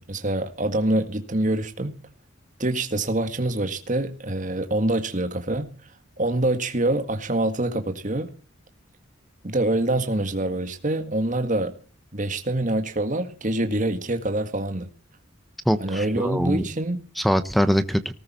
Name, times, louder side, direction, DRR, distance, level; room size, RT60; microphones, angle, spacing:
voice 1, 0.0-1.9 2.6-5.7 6.2-8.3 9.4-11.7 12.1-14.9 15.8-17.1, right 1 dB, 40° right, 1.8 m, -25 dB
voice 2, 15.7-16.6 17.2-18.1, equal, ahead, 0.9 m, -22 dB
19.0 x 13.5 x 4.3 m
head